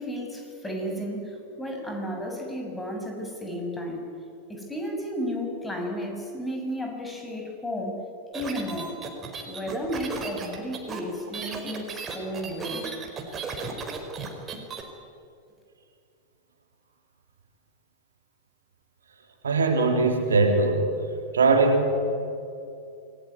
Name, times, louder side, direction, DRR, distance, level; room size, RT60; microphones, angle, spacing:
voice 1, 0.0-4.0 4.5-8.0 8.3-9.0 9.5-12.9, equal, 10° left, 2 dB, 7.0 m, -33 dB
sound 1, 8.3-14.8, right 4 dB, 25° right, 4.7 m, -35 dB
voice 2, 19.4-20.9 21.3-22.0, right 3 dB, 70° right, 3 dB, 3.7 m, -21 dB
28.0 x 20.5 x 9.8 m, 2.6 s
figure-of-eight pair, 90°, 0 cm